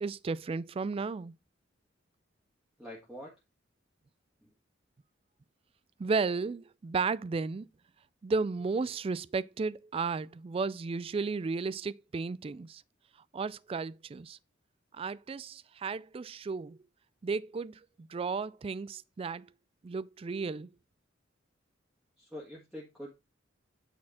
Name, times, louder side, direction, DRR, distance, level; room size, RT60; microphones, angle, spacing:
voice 1, 0.0-1.3 6.0-7.7 8.2-12.8 13.3-14.4 14.9-16.8 17.2-19.5 19.8-20.7, right 4 dB, 30° right, 0.3 m, -34 dB
voice 2, 2.8-3.3 4.4-4.5 22.2-23.1, equal, 5° right, 1.5 m, -45 dB
8.7 x 4.3 x 4.2 m
head